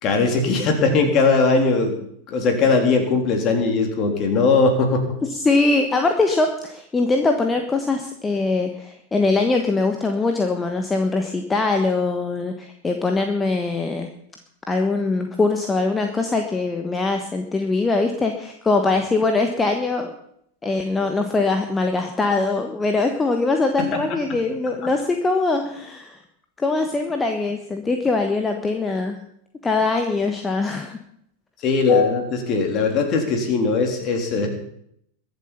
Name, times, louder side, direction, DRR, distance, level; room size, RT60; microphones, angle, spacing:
voice 1, 0.0-2.0 2.3-5.0 23.9-24.0 31.6-34.5, left 4 dB, 35° left, 3 dB, 3.5 m, -19 dB
voice 2, 5.2-14.1 14.7-20.1 20.6-26.2 26.6-29.2 29.6-31.0, left 3 dB, 15° left, 5 dB, 1.3 m, -22 dB
22.5 x 7.7 x 5.8 m, 0.72 s
figure-of-eight pair, 90°, 0 cm